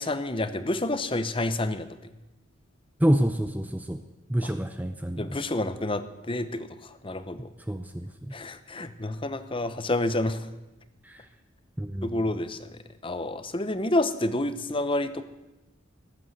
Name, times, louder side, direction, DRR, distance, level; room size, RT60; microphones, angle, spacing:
voice 1, 0.0-1.9 4.4-4.5 5.2-7.5 8.3-10.5 12.0-15.2, left 2 dB, 25° left, 11 dB, 0.9 m, -29 dB
voice 2, 3.0-4.0 4.3-5.4 7.7-8.3 11.0-11.2 11.8-12.1, right 1 dB, 10° right, 8 dB, 0.6 m, -27 dB
18.5 x 8.4 x 8.0 m, 1.0 s
head